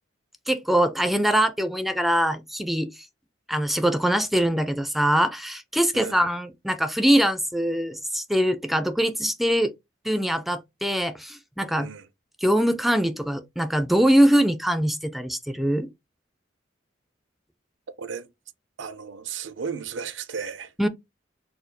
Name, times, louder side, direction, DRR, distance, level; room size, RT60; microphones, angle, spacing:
voice 1, 0.5-3.1 3.5-9.7 10.0-11.9 12.4-15.9 20.8-20.9, equal, ahead, 0.4 m, -23 dB
voice 2, 18.8-20.7, right 6 dB, 80° right, 0.5 m, -34 dB
4.2 x 2.2 x 3.8 m
head